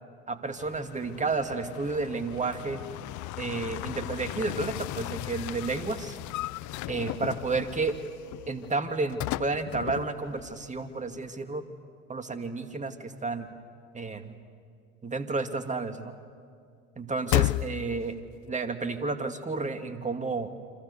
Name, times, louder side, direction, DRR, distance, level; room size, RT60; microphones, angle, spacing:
voice 1, 0.3-2.8 3.4-6.2 6.9-8.0 8.5-11.7 12.1-13.5 13.9-14.4 15.0-16.2 17.0-18.1 18.5-20.5, right 3 dB, 20° right, 8 dB, 2.2 m, -31 dB
sound 1, 0.6-10.9 11.1-11.2 17.3-18.2, left 19 dB, 50° left, 0.6 m, -35 dB
29.0 x 25.5 x 7.0 m, 2.2 s
hypercardioid pair, 70°, 39 cm